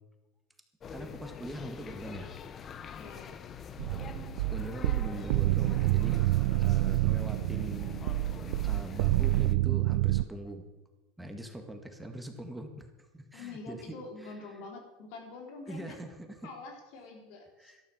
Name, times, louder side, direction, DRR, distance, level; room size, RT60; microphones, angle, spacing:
sound 1, 0.8-9.5, left 7 dB, 35° left, 1.0 m, -45 dB
voice 1, 0.9-2.3 3.8-4.1 4.5-6.2 6.6-8.0 8.6-10.7 11.2-12.9 13.1-14.0 14.2-14.3 15.7-16.5 17.6-17.8, right 1 dB, 5° right, 4 dB, 1.9 m, -42 dB
voice 2, 3.0-3.3 13.3-16.0 16.4-17.7, left 3 dB, 65° left, 3 dB, 3.7 m, -46 dB
sound 2, 3.8-10.2, right 18 dB, 75° right, 0.4 m, -28 dB
12.5 x 11.5 x 7.1 m, 1.1 s
hypercardioid pair, 100°, 0 cm